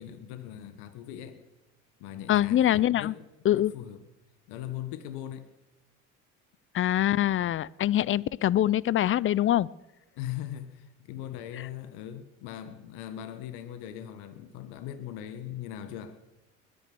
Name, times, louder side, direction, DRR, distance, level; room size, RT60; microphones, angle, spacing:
voice 1, 0.0-1.4 2.0-2.7 3.0-3.2 3.5-4.0 4.5-5.5 10.2-16.2, left 11 dB, 70° left, 10 dB, 1.6 m, -40 dB
voice 2, 2.3-3.1 3.4-3.7 6.7-9.7, left 12 dB, 30° left, 24 dB, 0.5 m, -24 dB
21.0 x 9.7 x 6.9 m, 0.99 s
hypercardioid pair, 75°, 42 cm